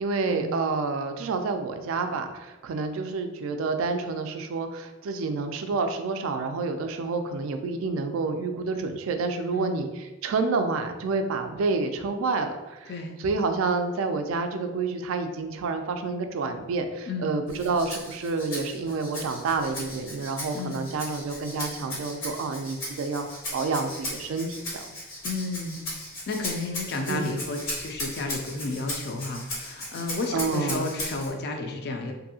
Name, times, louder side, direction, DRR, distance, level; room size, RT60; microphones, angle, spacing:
voice 1, 0.0-12.9 13.2-24.8 27.1-27.4 30.3-30.9, right 4 dB, 70° right, 6 dB, 0.3 m, -29 dB
voice 2, 12.9-13.2 17.1-17.4 20.5-20.8 25.2-25.8 26.3-32.1, left 3 dB, 45° left, 3 dB, 0.3 m, -32 dB
Rattle (instrument), 17.5-31.3, left 1 dB, 75° left, 1.1 m, -37 dB
2.7 x 2.6 x 2.7 m, 1.1 s
head